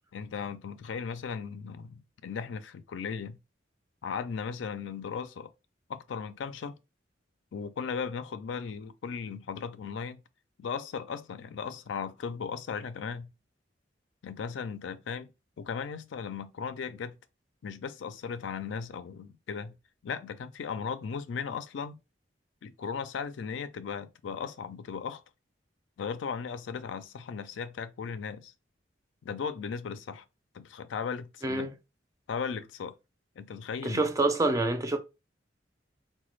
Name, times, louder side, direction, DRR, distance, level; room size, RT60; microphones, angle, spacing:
voice 1, 0.1-3.4 4.0-5.5 5.9-6.8 7.5-10.2 10.6-13.3 14.2-15.3 15.6-17.2 17.6-19.7 20.0-22.0 22.6-25.2 26.0-28.5 29.2-30.2 30.5-31.7 32.3-32.9 33.4-34.0, left 6 dB, 80° left, 0.4 m, -37 dB
voice 2, 33.8-35.0, right 2 dB, 20° right, 0.4 m, -27 dB
3.9 x 2.2 x 3.1 m
head